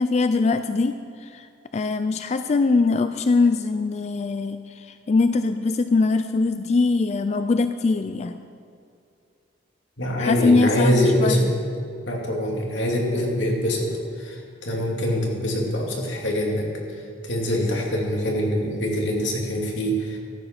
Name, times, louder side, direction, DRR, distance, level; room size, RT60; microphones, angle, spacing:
voice 1, 0.0-1.5 1.7-8.4 10.2-11.5, left 3 dB, 35° left, 10 dB, 0.3 m, -22 dB
voice 2, 10.0-11.5 12.1-13.9 14.2-16.7 17.2-20.2, equal, 90° left, -1 dB, 2.3 m, -24 dB
13.5 x 7.8 x 6.0 m, 2.4 s
head